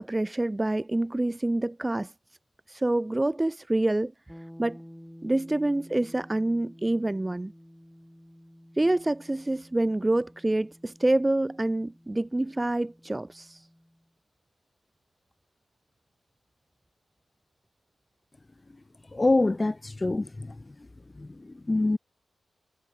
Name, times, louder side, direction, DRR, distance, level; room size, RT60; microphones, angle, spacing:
voice 1, 0.0-2.1 2.7-4.1 4.6-4.8 5.2-7.5 8.8-13.6, right 2 dB, 15° right, 0.4 m, -27 dB
sound 1, 4.3-14.1, equal, 5° left, 3.8 m, -51 dB
voice 2, 19.1-20.5 21.2-22.0, left 2 dB, 20° left, 1.4 m, -26 dB
wide cardioid pair, 120°, 0 cm